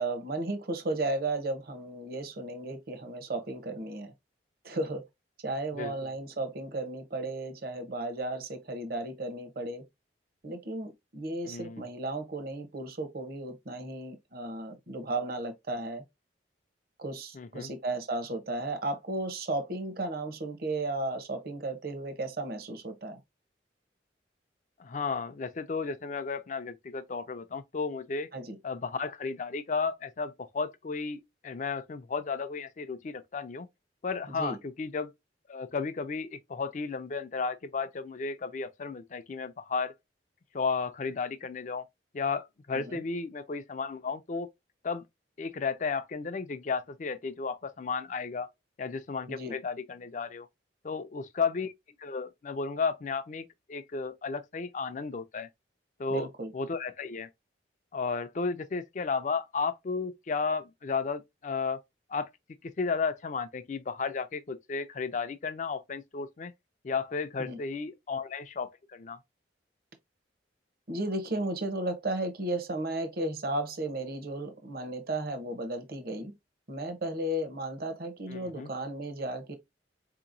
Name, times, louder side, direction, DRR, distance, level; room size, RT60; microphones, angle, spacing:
voice 1, 0.0-4.1 4.6-5.0 5.4-9.8 10.4-16.0 17.0-23.2 28.3-28.6 34.3-34.6 42.7-43.0 49.3-49.5 56.1-56.5 67.4-67.6 70.9-76.3 76.7-79.5, right 2 dB, 55° right, 0.8 m, -34 dB
voice 2, 11.5-11.9 17.3-17.7 24.8-28.3 28.6-33.7 34.0-35.1 35.5-39.9 40.5-41.8 42.1-44.5 44.8-45.0 45.4-48.5 48.8-50.5 50.8-51.7 52.0-55.5 56.0-57.3 57.9-61.8 62.1-62.3 62.8-66.5 66.8-69.2 78.3-78.7, left 4 dB, 40° left, 0.4 m, -33 dB
4.4 x 2.9 x 2.5 m
head